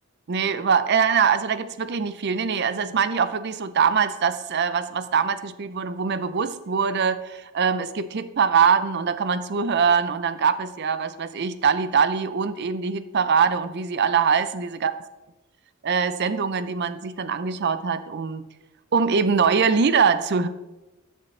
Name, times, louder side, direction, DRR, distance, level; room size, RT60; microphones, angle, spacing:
voice 1, 0.3-14.9 15.8-18.5 18.9-20.5, right 6 dB, 50° right, 13 dB, 0.5 m, -23 dB
11.5 x 6.5 x 3.2 m, 1.1 s
head